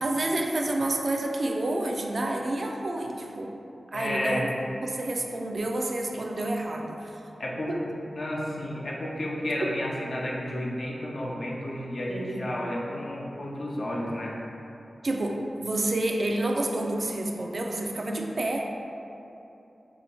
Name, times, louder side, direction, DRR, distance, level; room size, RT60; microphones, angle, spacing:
voice 1, 0.0-3.5 3.9-4.5 4.8-7.1 7.7-7.8 12.1-12.5 15.0-18.7, right 1 dB, 60° right, 1 dB, 0.4 m, -29 dB
voice 2, 3.9-4.5 7.4-7.7 8.1-14.3, left 1 dB, 60° left, -3 dB, 0.6 m, -31 dB
3.4 x 2.8 x 4.1 m, 2.8 s
wide cardioid pair, 65°, 0 cm